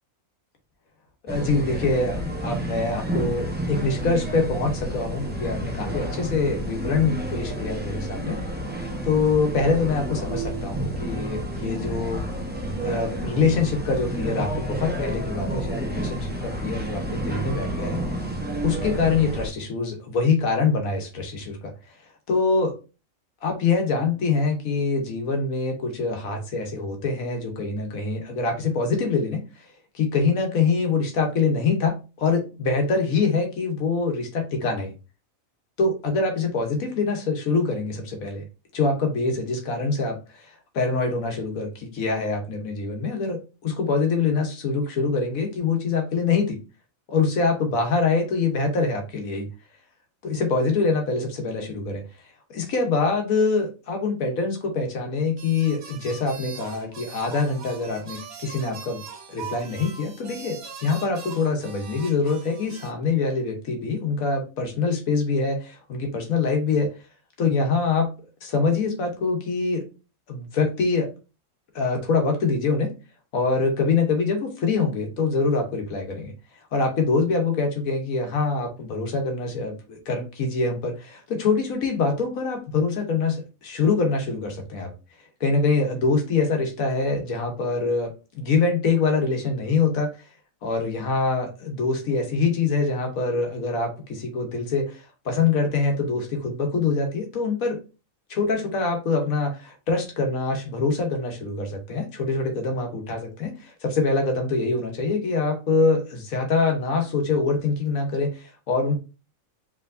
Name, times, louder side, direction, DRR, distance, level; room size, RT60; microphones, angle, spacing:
voice 1, 1.2-8.6 9.0-12.3 12.8-18.0 18.6-21.7 22.3-22.7 23.4-29.4 29.9-34.9 35.8-38.4 38.7-46.6 47.1-49.5 50.2-52.0 52.5-59.0 59.3-66.9 67.4-68.1 68.4-69.8 70.3-71.1 71.7-72.9 73.3-76.3 76.7-84.9 85.4-90.1 90.6-97.8 98.3-109.0, left 4 dB, 80° left, 4 dB, 1.5 m, -24 dB
sound 1, 1.3-19.5, right 1 dB, 10° right, 0.6 m, -30 dB
sound 2, 55.4-62.9, right 6 dB, 80° right, 1.5 m, -41 dB
4.7 x 3.4 x 2.6 m, 0.31 s
omnidirectional pair, 1.4 m